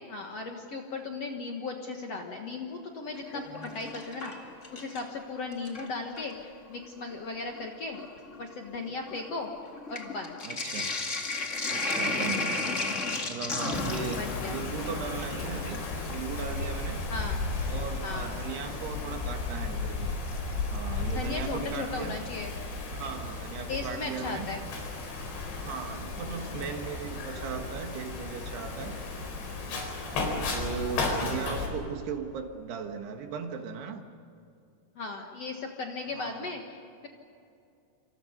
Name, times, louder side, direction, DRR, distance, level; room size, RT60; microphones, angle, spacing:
voice 1, 0.1-4.3 4.7-8.0 8.4-9.5 9.9-10.4 13.8-14.6 17.1-17.5 18.0-18.4 21.1-22.5 23.7-24.6 28.9-29.1 29.7-30.0 35.0-37.1, left 3 dB, 55° left, 2 dB, 2.0 m, -37 dB
Sink (filling or washing), 3.1-5.2 5.5-6.3 7.1-7.2 7.5-16.6 18.4-18.5 20.3-20.8 21.1-21.2 21.4-21.5, left 3 dB, 35° left, 1.1 m, -34 dB
voice 2, 10.4-10.9 11.7-12.6 13.3-17.0 17.7-20.1 20.7-22.2 22.9-24.5 25.6-29.0 30.0-34.0 36.1-36.5, right 6 dB, 75° right, 5 dB, 3.6 m, -37 dB
Wind, 13.7-31.7, left 3 dB, 90° left, 6.5 m, -34 dB
27.5 x 27.5 x 5.3 m, 2.6 s
omnidirectional pair, 4.8 m